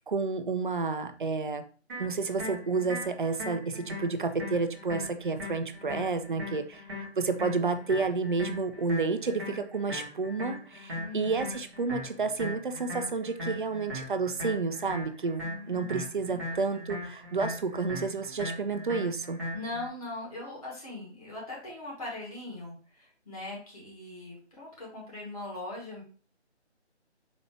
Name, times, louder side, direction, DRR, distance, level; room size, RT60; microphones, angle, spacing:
voice 1, 0.1-1.6 2.0-19.4, right 4 dB, 50° right, 8 dB, 0.5 m, -30 dB
sound 1, 1.9-19.9, left 1 dB, 15° right, 0.9 m, -39 dB
voice 2, 10.9-11.5 15.4-16.0 16.2-16.6 19.5-26.0, left 2 dB, 35° left, -3 dB, 1.2 m, -40 dB
4.0 x 2.6 x 3.3 m, 0.40 s
figure-of-eight pair, 160°, 34 cm